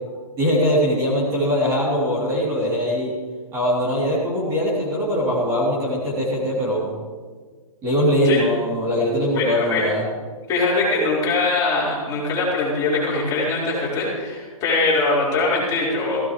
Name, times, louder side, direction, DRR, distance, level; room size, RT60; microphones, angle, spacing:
voice 1, 0.4-3.1 3.5-6.9 7.8-10.0, equal, 15° right, -6 dB, 3.4 m, -21 dB
voice 2, 9.3-9.8 10.5-16.2, left 3 dB, 15° left, -7 dB, 4.9 m, -22 dB
18.0 x 16.5 x 3.3 m, 1.5 s
hypercardioid pair, 165°, 19 cm